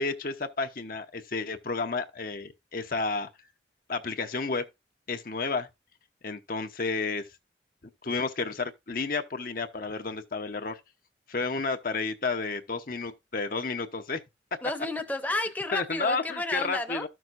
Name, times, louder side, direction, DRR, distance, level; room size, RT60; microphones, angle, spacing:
voice 1, 0.0-3.3 3.9-4.7 5.1-5.7 6.2-7.3 8.0-10.8 11.3-14.2 15.7-17.1, left 4 dB, 50° left, 0.8 m, -31 dB
voice 2, 14.6-17.1, left 2 dB, 10° left, 0.9 m, -32 dB
13.5 x 6.1 x 2.5 m
head